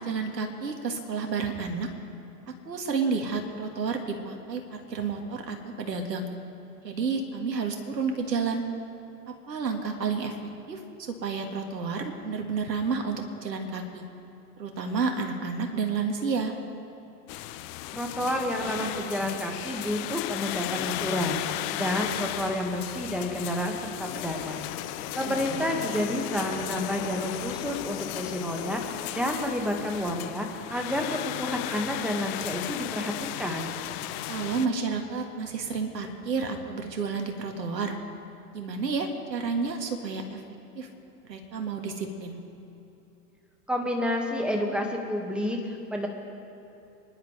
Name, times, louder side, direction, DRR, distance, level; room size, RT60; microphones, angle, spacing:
voice 1, 0.0-1.9 2.7-6.3 6.8-8.6 9.3-10.3 10.7-14.0 14.6-16.5 25.2-25.6 34.3-38.0 38.5-40.4 40.8-40.9 41.3-42.4, right 5 dB, 85° right, 4 dB, 1.9 m, -30 dB
sound 1, 17.3-34.7, left 14 dB, 30° left, 0.5 m, -35 dB
voice 2, 17.9-24.7 25.2-33.1 33.4-33.7 43.7-46.1, left 1 dB, ahead, 1 dB, 1.8 m, -30 dB
26.5 x 11.0 x 3.4 m, 2.9 s
hypercardioid pair, 100°, 49 cm